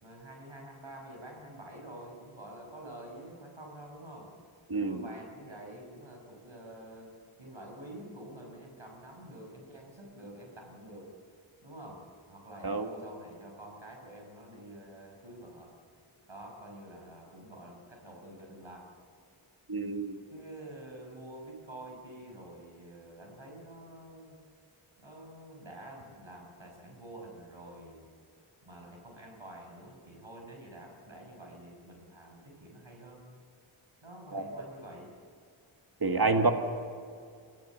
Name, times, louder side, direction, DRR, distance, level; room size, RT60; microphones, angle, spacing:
voice 1, 0.0-4.3 4.8-11.1 11.6-15.7 16.3-18.9 20.3-24.4 25.0-28.1 28.6-33.2 34.0-35.1 36.3-36.5, right 1 dB, 70° right, 1 dB, 5.8 m, -48 dB
voice 2, 4.7-5.0 12.6-12.9 19.7-20.2 34.3-34.4 36.0-36.5, right 3 dB, 45° right, 5 dB, 1.7 m, -28 dB
25.0 x 17.0 x 7.3 m, 2.3 s
wide cardioid pair, 40°, 49 cm